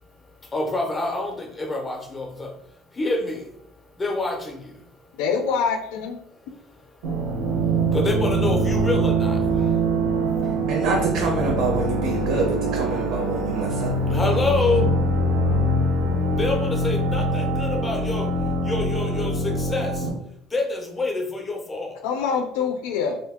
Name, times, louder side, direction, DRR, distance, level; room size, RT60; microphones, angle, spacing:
voice 1, 0.5-2.5 3.0-3.4 4.0-4.6 7.9-9.4 14.1-14.8 16.4-18.3 18.7-19.3 19.6-19.9 20.5-21.9, left 2 dB, 15° left, 2 dB, 0.5 m, -26 dB
voice 2, 5.1-6.3 22.0-23.2, left 6 dB, 80° left, 6 dB, 0.4 m, -25 dB
sound 1, 7.0-20.1, right 1 dB, 85° right, 1.0 m, -23 dB
voice 3, 10.4-13.9, right 3 dB, 55° right, 0 dB, 0.6 m, -26 dB
2.6 x 2.6 x 3.5 m, 0.74 s
cardioid pair, 175°, 0 cm